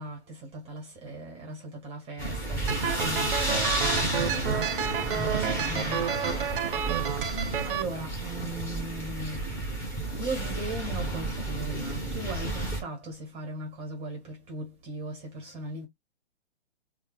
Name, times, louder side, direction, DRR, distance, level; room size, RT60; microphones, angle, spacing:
voice 1, 0.0-7.0 7.6-9.7 10.1-15.9, right 2 dB, 15° right, 0.8 m, -38 dB
sound 1, 2.2-12.8, right 1 dB, 10° left, 1.0 m, -32 dB
sound 2, 2.7-7.8, right 8 dB, 50° right, 0.5 m, -30 dB
3.1 x 2.0 x 2.9 m
figure-of-eight pair, 125°, 34 cm